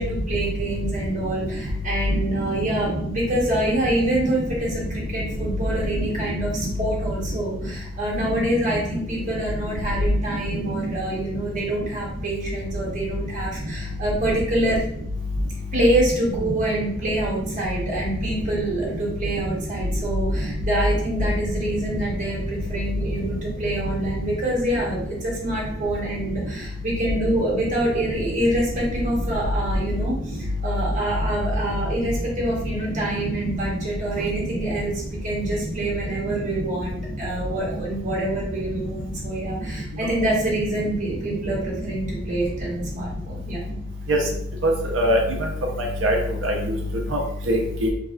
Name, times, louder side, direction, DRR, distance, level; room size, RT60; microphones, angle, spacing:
voice 1, 0.0-14.8 15.7-34.9 35.2-43.6, right 1 dB, 40° right, -5 dB, 1.1 m, -26 dB
voice 2, 44.6-45.2 45.8-46.8 47.1-47.2 47.5-47.9, equal, 85° right, 1 dB, 0.6 m, -22 dB
3.3 x 2.2 x 2.4 m, 0.70 s
head